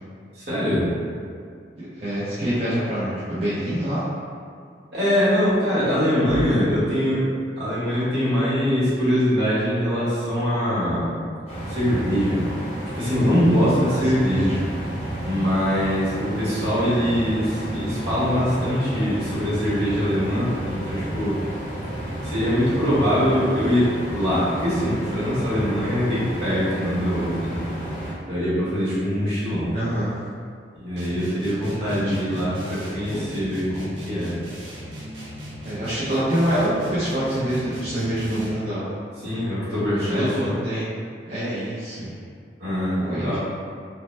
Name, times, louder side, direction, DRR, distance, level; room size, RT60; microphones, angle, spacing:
voice 1, 0.3-0.9 4.9-7.2 7.6-11.1 11.7-12.5 13.0-14.5 15.2-21.4 22.2-23.9 24.1-27.6 28.3-29.7 30.7-34.3 39.2-40.6 42.6-43.4, equal, 65° right, -10 dB, 1.2 m, -23 dB
voice 2, 1.8-4.0 13.9-14.6 29.7-30.1 31.9-32.2 33.1-33.2 35.6-38.8 39.9-40.8 41.3-42.2 43.0-43.4, right 1 dB, 35° right, -12 dB, 0.5 m, -26 dB
sound 1, 11.5-28.1, right 1 dB, 35° left, 0.6 m, -32 dB
sound 2, 31.0-38.7, equal, 90° right, 0.6 m, -37 dB
2.8 x 2.1 x 3.1 m, 2.2 s
head